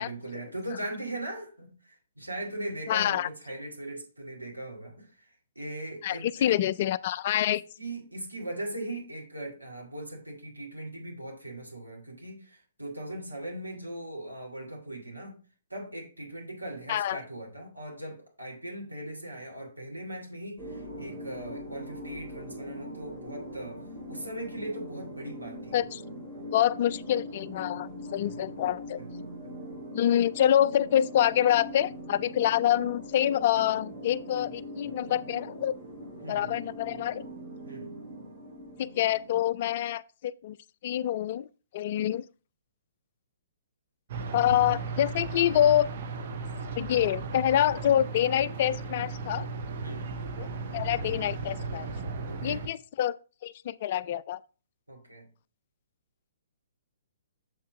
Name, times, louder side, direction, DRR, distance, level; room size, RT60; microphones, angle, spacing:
voice 1, 0.0-5.1 5.6-6.6 7.5-15.4 15.7-23.8 24.1-25.8 28.2-28.4 29.0-29.8 36.2-36.6 37.6-37.9 49.8-50.1 52.3-52.6 54.9-55.2, right 1 dB, 85° right, 2.1 m, -39 dB
voice 2, 2.9-3.3 6.0-7.6 16.9-17.2 25.7-26.0 26.5-29.0 29.9-35.7 36.3-37.2 38.8-40.6 40.8-41.5 41.7-42.2 44.3-45.9 46.8-49.5 50.4-51.9 52.4-53.2 53.4-54.4, left 11 dB, 40° left, 0.3 m, -26 dB
sound 1, 20.6-39.8, equal, 15° right, 2.8 m, -42 dB
sound 2, 44.1-52.7, right 4 dB, 45° right, 0.8 m, -36 dB
7.2 x 5.5 x 3.5 m
figure-of-eight pair, 120°, 0 cm